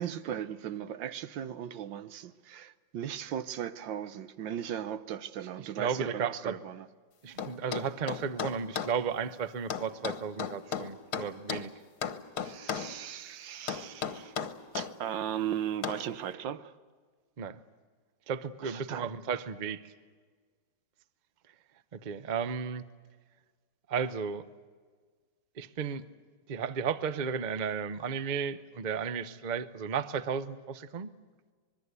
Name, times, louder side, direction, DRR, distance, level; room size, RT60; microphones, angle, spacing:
voice 1, 0.0-6.9 12.4-14.3 14.7-16.7 18.6-19.1, right 10 dB, 85° right, 1.6 m, -37 dB
voice 2, 5.6-6.6 7.2-11.7 17.4-17.6 18.3-19.9 21.9-22.8 23.9-24.5 25.6-26.0 26.5-31.1, right 6 dB, 40° right, 0.6 m, -34 dB
sound 1, 7.4-9.0 9.7-11.7 12.0-12.9 13.7-14.9 15.8-16.1, left 7 dB, 60° left, 1.6 m, -35 dB
25.5 x 22.0 x 8.2 m
omnidirectional pair, 2.0 m